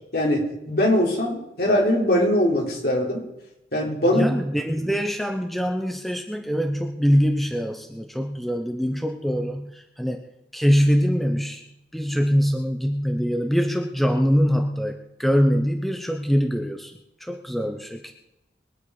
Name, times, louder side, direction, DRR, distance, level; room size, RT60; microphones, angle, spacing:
voice 1, 0.1-3.3 3.7-4.3, left 1 dB, 60° left, -1 dB, 4.0 m, -21 dB
voice 2, 4.1-10.2 10.5-11.6 11.9-18.1, equal, ahead, 4 dB, 0.9 m, -23 dB
23.0 x 9.6 x 4.9 m, 0.88 s
head